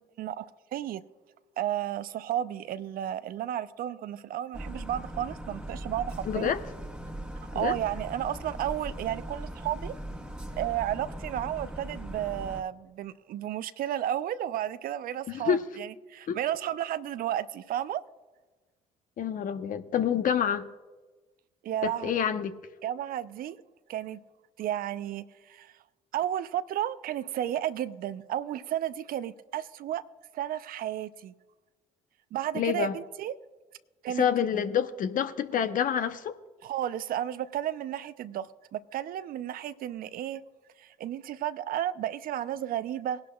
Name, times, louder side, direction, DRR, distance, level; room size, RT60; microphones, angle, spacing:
voice 1, 0.2-1.0 1.6-6.5 7.4-9.9 10.5-18.0 21.6-22.1 22.8-23.6 23.9-24.2 24.6-25.7 26.1-30.1 30.3-31.3 32.3-33.3 34.0-34.3 36.6-40.4 40.8-43.2, right 11 dB, 60° right, 0.6 m, -33 dB
sound 1, 4.5-12.6, right 1 dB, 5° right, 1.5 m, -39 dB
voice 2, 6.3-6.6 7.5-7.7 15.3-15.6 16.3-16.4 19.2-20.6 21.8-22.5 32.5-32.9 34.2-36.3, left 8 dB, 55° left, 0.9 m, -27 dB
20.5 x 11.0 x 2.4 m
hypercardioid pair, 55°, 17 cm